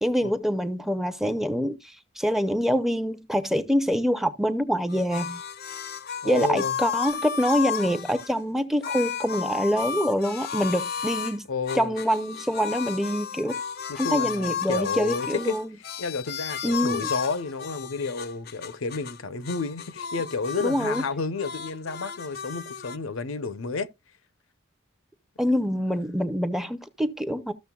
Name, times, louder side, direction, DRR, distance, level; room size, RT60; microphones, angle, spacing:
voice 1, 0.0-5.4 6.2-11.5 11.7-13.6 14.0-15.8 16.6-17.1 20.6-21.1 25.4-27.5, equal, ahead, 0.6 m, -25 dB
sound 1, 4.9-8.3 8.8-11.4 11.7-19.2 19.4-21.1 21.4-23.0, left 7 dB, 50° left, 0.5 m, -33 dB
voice 2, 6.2-6.8 11.5-11.9 13.9-15.6 16.0-23.9, left 4 dB, 85° left, 0.8 m, -31 dB
14.0 x 6.5 x 2.3 m
head